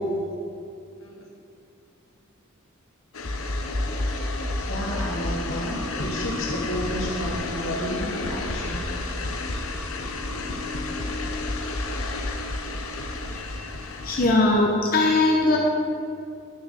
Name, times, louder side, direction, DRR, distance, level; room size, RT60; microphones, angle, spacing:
sound 1, 3.1-14.3, left 2 dB, 75° left, 1.0 m, -30 dB
voice 1, 4.6-8.8, equal, 60° left, -4 dB, 2.4 m, -31 dB
voice 2, 13.3-13.7 14.0-15.6, left 2 dB, 40° left, -2 dB, 0.9 m, -20 dB
10.0 x 6.5 x 6.4 m, 2.5 s
head